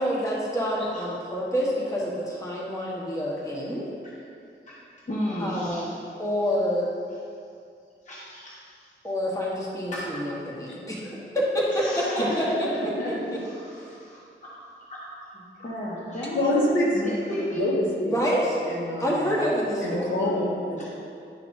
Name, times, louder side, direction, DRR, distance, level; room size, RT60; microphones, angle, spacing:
voice 1, 0.0-3.8 5.4-6.9 9.0-12.7 18.0-18.6 19.0-20.2, equal, 15° left, -5 dB, 1.2 m, -27 dB
voice 2, 5.1-6.0 8.0-8.9 9.9-10.2 11.7-14.5 14.9-15.2 15.6-17.7 20.0-20.1 20.8-20.9, left 1 dB, 35° left, -6 dB, 1.1 m, -34 dB
voice 3, 16.3-16.9 17.6-18.2 18.6-19.3 19.8-20.9, left 1 dB, 70° left, -5 dB, 1.6 m, -26 dB
10.5 x 5.8 x 2.6 m, 2.4 s
wide cardioid pair, 115°, 20 cm